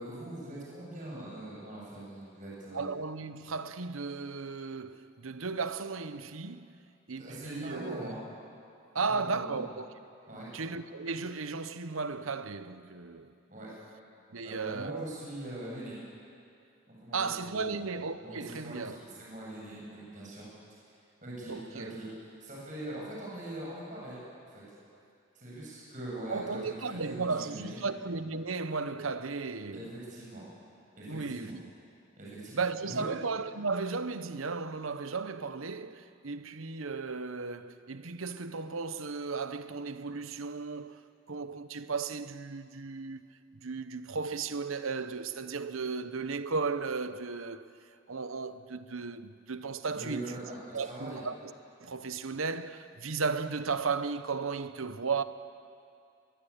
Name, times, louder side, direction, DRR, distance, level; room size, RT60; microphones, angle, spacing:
voice 1, 0.0-2.9 7.2-8.2 9.1-9.6 10.3-10.5 13.5-13.7 14.4-16.0 16.9-17.8 18.2-20.5 21.2-22.1 22.4-24.2 24.5-24.6 25.3-27.8 29.7-30.4 30.9-31.5 32.2-33.0 49.9-51.2, right 1 dB, 40° right, 7.9 m, -42 dB
voice 2, 2.7-6.7 7.1-8.1 8.9-9.9 10.5-13.3 14.3-15.1 17.1-19.0 21.5-22.0 26.3-29.9 31.1-31.7 32.5-41.0 41.3-47.7 48.1-50.3 50.7-51.5 51.8-55.2, right 4 dB, 90° right, 1.0 m, -35 dB
23.0 x 22.0 x 8.7 m
head